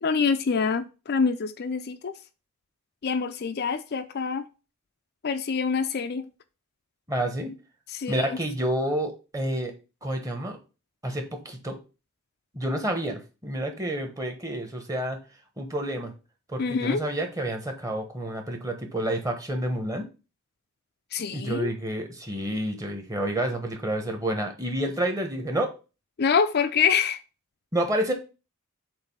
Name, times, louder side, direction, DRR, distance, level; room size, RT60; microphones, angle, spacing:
voice 1, 0.0-2.2 3.0-4.5 5.2-6.3 7.9-8.4 16.6-17.0 21.1-21.7 26.2-27.2, left 5 dB, 50° left, 0.4 m, -26 dB
voice 2, 7.1-7.5 8.1-9.7 10.0-10.6 11.0-11.8 12.5-15.2 15.6-16.1 16.5-20.1 21.3-25.7 27.7-28.1, right 1 dB, 15° right, 1.2 m, -29 dB
7.6 x 2.7 x 5.5 m
head